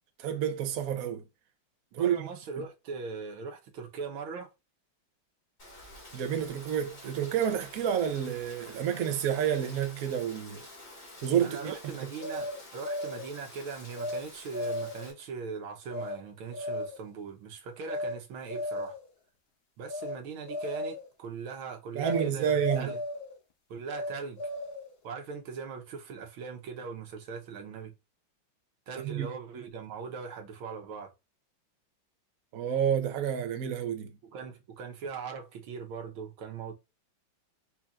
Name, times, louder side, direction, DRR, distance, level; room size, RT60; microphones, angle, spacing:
voice 1, 0.2-1.2 1.9-2.3 6.1-10.6 11.2-11.7 21.9-22.9 29.0-29.3 32.5-34.1, right 9 dB, 60° right, 1.0 m, -29 dB
voice 2, 1.9-4.5 11.4-19.0 19.8-23.0 23.7-24.5 25.0-27.9 28.9-31.1 34.2-36.7, right 5 dB, 85° right, 1.8 m, -40 dB
Rain, 5.6-15.1, left 2 dB, 40° left, 2.4 m, -49 dB
sound 1, 12.2-13.3 14.0-14.2 14.5-15.1 15.9-16.2 16.5-17.1 17.8-18.2 18.5-19.1 19.8-20.2 20.5-21.1 22.0-22.3 22.5-23.3 23.9-24.9, left 1 dB, 70° left, 0.6 m, -35 dB
4.9 x 4.4 x 2.4 m
omnidirectional pair, 2.2 m